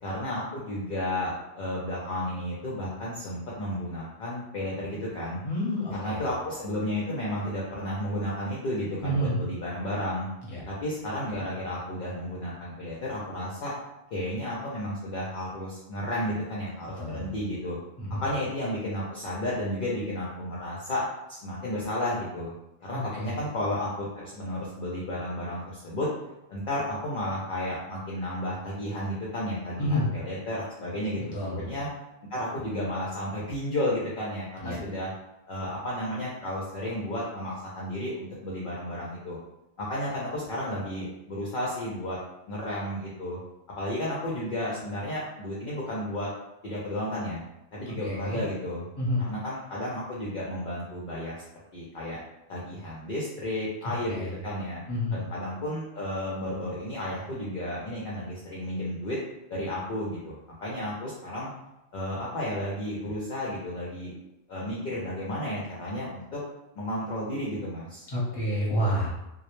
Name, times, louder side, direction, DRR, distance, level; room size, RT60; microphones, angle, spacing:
voice 1, 0.0-5.4 5.9-10.3 10.7-13.7 14.1-17.8 18.2-21.0 21.3-22.5 22.8-26.1 26.5-31.9 32.3-35.1 35.5-39.4 39.8-42.2 42.5-43.4 43.8-46.3 46.6-47.4 47.7-48.8 49.3-51.3 51.7-52.2 52.5-54.8 55.1-59.2 59.5-61.5 61.9-64.1 64.5-66.4 66.8-68.1, left 1 dB, 60° left, -6 dB, 0.6 m, -32 dB
voice 2, 5.4-6.2 9.0-9.4 10.4-10.6 17.0-17.3 18.0-18.2 23.2-23.3 29.8-30.1 31.3-31.6 34.6-34.8 48.0-48.4 49.0-49.2 54.1-54.3 54.9-55.2 68.1-69.1, equal, 25° left, -7 dB, 0.7 m, -29 dB
2.1 x 2.0 x 2.9 m, 0.91 s
omnidirectional pair, 1.1 m